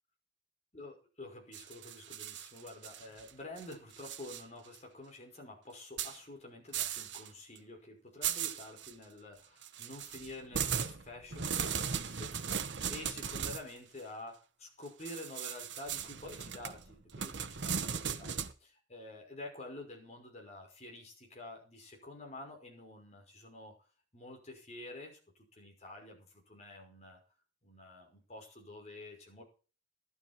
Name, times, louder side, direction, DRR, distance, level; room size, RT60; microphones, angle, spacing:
voice 1, 0.7-23.8 24.1-25.2 25.5-27.2 27.6-29.4, left 2 dB, 40° left, 1 dB, 5.6 m, -49 dB
sound 1, 1.5-3.3 3.6-4.4 4.7-4.8 6.0-6.2 6.7-7.3 7.6-7.7 8.2-8.9 9.6-13.7 15.1-18.5, right 7 dB, 90° right, 1.1 m, -37 dB
12.5 x 12.0 x 4.5 m, 0.36 s
head